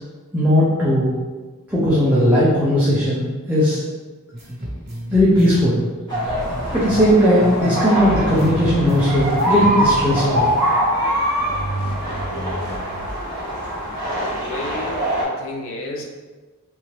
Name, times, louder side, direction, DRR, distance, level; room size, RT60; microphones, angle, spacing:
voice 1, 0.3-1.1 1.7-3.8 5.1-5.8 6.7-10.4, equal, 5° right, -10 dB, 0.6 m, -17 dB
sound 1, 4.3-7.9 8.1-10.8, equal, 50° right, 1.0 m, -33 dB
sound 2, 6.1-15.2, right 1 dB, 20° left, 1.0 m, -23 dB
sound 3, 6.3-7.7 8.0-10.8 11.4-13.1, right 2 dB, 90° right, 0.6 m, -31 dB
voice 2, 14.4-16.0, left 2 dB, 60° left, 0 dB, 0.5 m, -32 dB
3.4 x 2.6 x 3.2 m, 1.3 s
head